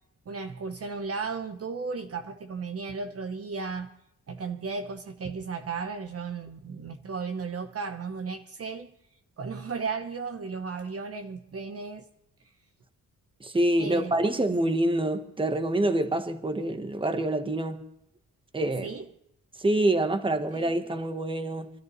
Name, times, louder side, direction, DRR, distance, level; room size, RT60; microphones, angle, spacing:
voice 1, 0.3-3.9 4.3-8.9 9.4-12.1 13.8-14.3 18.8-19.1 20.5-20.7, right 4 dB, 45° right, 0.9 m, -35 dB
voice 2, 13.4-17.8 18.5-18.9 19.6-21.7, right 1 dB, 15° right, 1.1 m, -26 dB
24.5 x 13.5 x 3.1 m
wide cardioid pair, 135°, 33 cm